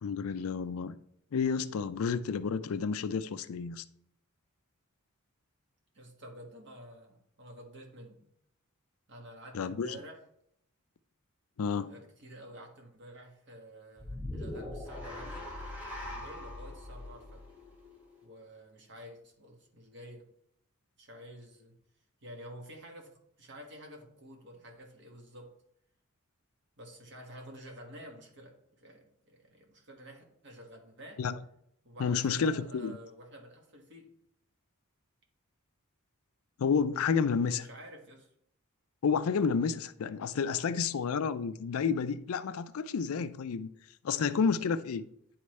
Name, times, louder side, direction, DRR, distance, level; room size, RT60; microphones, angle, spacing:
voice 1, 0.0-1.0 1.3-3.8 9.5-10.0 11.6-11.9 31.2-31.4 32.0-33.0 36.6-37.7 39.0-43.7 44.0-45.0, left 6 dB, 70° left, 0.4 m, -30 dB
voice 2, 5.9-8.2 9.1-10.2 11.7-15.5 16.0-17.4 18.2-20.3 21.0-21.8 22.2-25.5 26.8-31.2 31.8-34.1 37.4-38.3 40.4-40.6, equal, 55° right, 1.5 m, -50 dB
sound 1, 14.0-18.3, left 1 dB, 10° right, 1.4 m, -42 dB
9.7 x 4.4 x 3.2 m
head